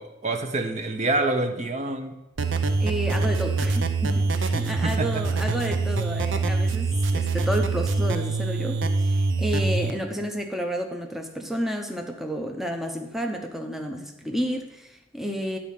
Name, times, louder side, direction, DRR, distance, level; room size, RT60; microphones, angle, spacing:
voice 1, 0.0-2.1 4.7-5.1, right 2 dB, 35° right, 6 dB, 0.7 m, -27 dB
sound 1, 2.4-9.9, right 3 dB, 75° right, 0.7 m, -24 dB
voice 2, 2.8-15.6, equal, ahead, 3 dB, 0.6 m, -31 dB
10.0 x 4.2 x 7.3 m, 0.97 s
head